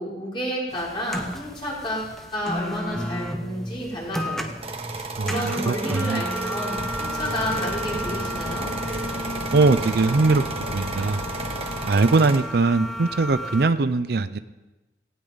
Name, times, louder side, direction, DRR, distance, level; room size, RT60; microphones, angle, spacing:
voice 1, 0.0-4.5 5.2-8.6, equal, 30° left, -6 dB, 6.2 m, -30 dB
sound 1, 0.7-13.7, equal, ahead, 1.2 m, -33 dB
sound 2, 4.6-12.4, right 3 dB, 35° right, 1.6 m, -34 dB
voice 2, 5.2-6.2 9.5-10.4 10.7-11.2 11.8-14.4, right 3 dB, 60° right, 13 dB, 0.5 m, -21 dB
sound 3, 6.8-11.9, left 2 dB, 65° left, 0.7 m, -36 dB
18.0 x 17.0 x 4.0 m, 1.1 s
head